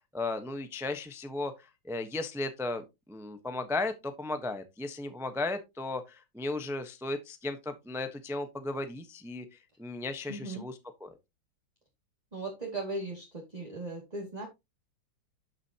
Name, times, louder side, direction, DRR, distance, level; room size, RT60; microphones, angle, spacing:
voice 1, 0.1-11.1, left 2 dB, ahead, 0.7 m, -35 dB
voice 2, 10.3-10.6 12.3-14.5, right 2 dB, 20° right, 2.4 m, -37 dB
12.0 x 6.6 x 2.9 m
omnidirectional pair, 2.2 m